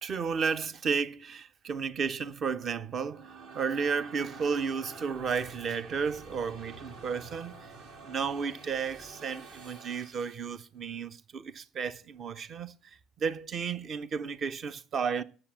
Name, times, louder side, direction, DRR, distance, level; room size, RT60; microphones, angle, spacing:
voice 1, 0.0-3.3 3.5-7.7 8.0-12.8 13.2-15.2, right 5 dB, 40° right, 0.9 m, -33 dB
sound 1, 2.8-10.6, right 3 dB, 60° right, 2.4 m, -49 dB
13.0 x 8.0 x 8.6 m
figure-of-eight pair, 60°, 0 cm